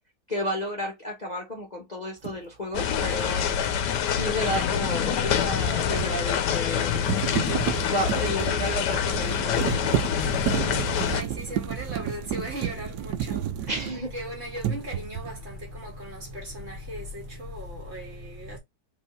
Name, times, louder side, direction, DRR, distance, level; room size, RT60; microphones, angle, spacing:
voice 1, 0.3-3.8 4.1-7.5 7.9-9.8 13.7-14.1, equal, 25° left, 1.2 m, -32 dB
sound 1, 2.2-2.4 5.5-14.2 14.6-15.4, right 11 dB, 75° right, 1.1 m, -31 dB
sound 2, 2.7-11.2, left 8 dB, 75° left, 1.3 m, -26 dB
voice 2, 10.7-18.6, equal, 35° right, 2.2 m, -37 dB
4.8 x 3.3 x 3.2 m
omnidirectional pair, 1.9 m